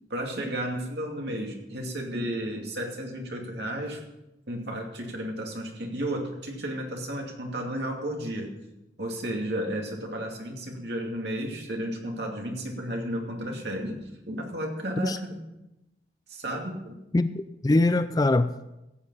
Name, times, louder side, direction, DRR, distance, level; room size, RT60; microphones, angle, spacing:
voice 1, 0.1-4.0 4.5-8.5 9.0-15.4 16.3-16.9, right 1 dB, 60° right, 1 dB, 2.5 m, -33 dB
voice 2, 17.1-18.8, left 2 dB, 20° left, 12 dB, 0.3 m, -23 dB
15.5 x 7.5 x 5.5 m, 0.92 s
head